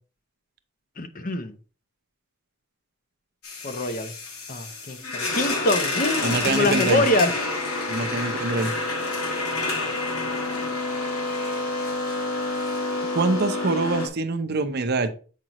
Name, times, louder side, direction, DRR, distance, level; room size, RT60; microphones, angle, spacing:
voice 1, 1.0-1.5 3.6-4.1 4.5-7.3, left 1 dB, 40° left, 0.7 m, -24 dB
sound 1, 3.4-14.1, left 2 dB, 80° left, 1.5 m, -28 dB
voice 2, 6.2-7.0 7.9-8.7 13.1-15.1, right 3 dB, 50° right, 0.7 m, -24 dB
7.5 x 5.1 x 2.9 m
head